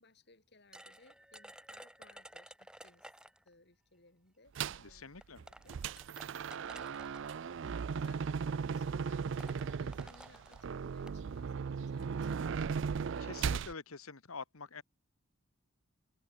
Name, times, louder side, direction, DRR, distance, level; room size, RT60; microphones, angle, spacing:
voice 1, 0.0-3.1 3.4-6.2 6.6-7.1 7.7-12.7, left 2 dB, 50° left, 4.7 m, -64 dB
sound 1, 0.7-3.5 4.6-4.7 5.2-7.3 8.3-8.5 8.8-8.9 9.2-11.2, right 1 dB, 5° right, 3.7 m, -54 dB
sound 2, 4.6-4.9 5.4-13.7, right 6 dB, 60° right, 0.4 m, -37 dB
voice 2, 4.8-5.4 13.2-14.8, left 4 dB, 85° left, 1.5 m, -46 dB
head